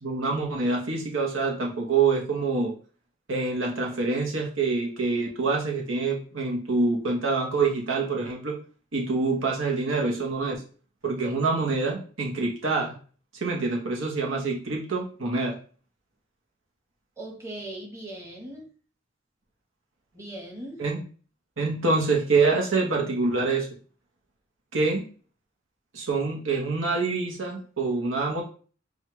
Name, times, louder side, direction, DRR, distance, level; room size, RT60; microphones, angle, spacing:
voice 1, 0.0-2.7 3.3-8.5 8.9-10.6 11.0-12.9 13.3-15.5 20.8-21.0 21.6-23.7 24.7-25.0 25.9-28.4, right 3 dB, 75° right, 0 dB, 1.0 m, -26 dB
voice 2, 17.2-18.7 20.1-20.8, right 1 dB, 15° right, -1 dB, 1.1 m, -39 dB
6.2 x 2.4 x 3.1 m, 0.40 s
head